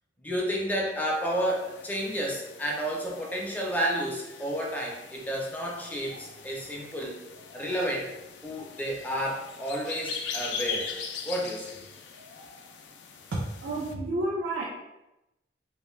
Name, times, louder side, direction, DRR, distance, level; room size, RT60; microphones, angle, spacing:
voice 1, 0.2-7.2 7.5-8.1 8.4-10.9 11.2-11.8, equal, 10° left, -2 dB, 0.5 m, -31 dB
sound 1, 1.0-13.9, left 6 dB, 70° left, 0.3 m, -41 dB
voice 2, 13.3-14.6, right 1 dB, 65° right, -4 dB, 0.5 m, -30 dB
2.5 x 2.3 x 3.1 m, 0.95 s
head